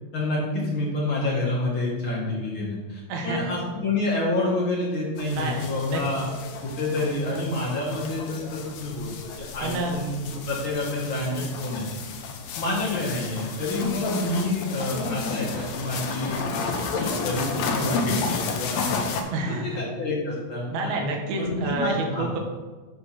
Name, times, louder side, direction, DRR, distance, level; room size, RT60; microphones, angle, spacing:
voice 1, 0.1-6.3 6.6-11.8 12.6-16.7 17.0-19.0 19.5-21.0 21.4-22.3, left 2 dB, 50° left, -5 dB, 1.7 m, -28 dB
voice 2, 3.1-3.5 5.3-6.0 9.6-10.0 11.3-11.5 19.3-19.8 20.7-22.4, right 2 dB, 70° right, 2 dB, 2.1 m, -29 dB
sound 1, 5.2-19.2, left 4 dB, 75° left, 1.7 m, -32 dB
7.8 x 3.4 x 5.7 m, 1.3 s
omnidirectional pair, 3.9 m